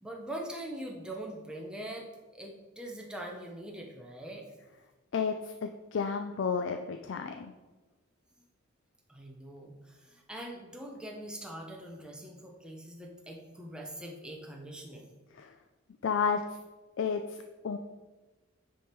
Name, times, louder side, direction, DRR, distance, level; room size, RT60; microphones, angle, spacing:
voice 1, 0.0-2.1 2.3-4.4 9.1-15.1, right 1 dB, 5° right, -1 dB, 0.8 m, -42 dB
voice 2, 5.1-7.5 15.3-15.5 16.0-16.6 17.0-17.8, left 6 dB, 65° left, 6 dB, 0.4 m, -32 dB
9.3 x 3.5 x 4.5 m, 1.2 s
head